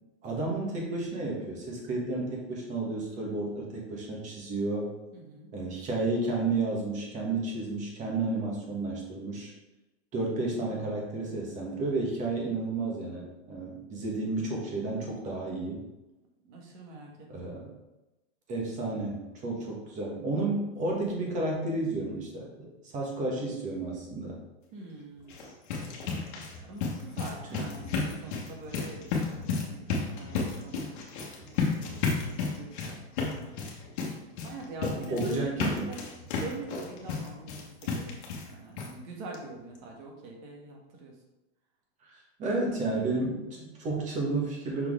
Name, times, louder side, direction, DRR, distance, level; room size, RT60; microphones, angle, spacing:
voice 1, 0.2-4.9 5.5-9.5 10.1-15.8 17.3-17.7 18.5-24.4 27.5-27.6 34.8-35.9 42.0-42.1 42.4-44.9, right 2 dB, 20° right, -1 dB, 1.4 m, -32 dB
voice 2, 5.1-5.5 16.5-17.1 17.4-17.5 24.7-25.4 26.6-30.8 31.4-33.7 34.4-36.0 36.4-41.2, right 3 dB, 40° right, 0 dB, 1.6 m, -44 dB
sound 1, 25.2-38.5 38.8-38.9 39.3-39.4 39.8-39.9, left 4 dB, 45° left, 1.4 m, -33 dB
6.1 x 4.5 x 3.7 m, 1.0 s
supercardioid pair, 160°, 35 cm